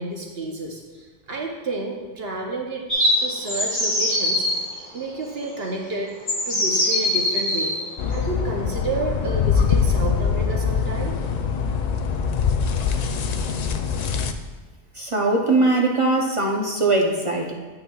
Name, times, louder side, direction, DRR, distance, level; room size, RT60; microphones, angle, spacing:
voice 1, 0.0-2.9 3.2-4.5 4.9-6.1 6.5-7.7 8.1-11.2, right 2 dB, 65° right, 1 dB, 1.1 m, -30 dB
sound 1, 2.9-4.5 5.6-5.7 6.3-7.8, left 1 dB, 10° left, 2.4 m, -22 dB
sound 2, 8.0-14.3, left 6 dB, 60° left, 0.4 m, -23 dB
voice 2, 15.0-17.5, right 2 dB, 35° right, 0 dB, 0.6 m, -21 dB
8.7 x 8.7 x 2.3 m, 1.4 s
omnidirectional pair, 1.1 m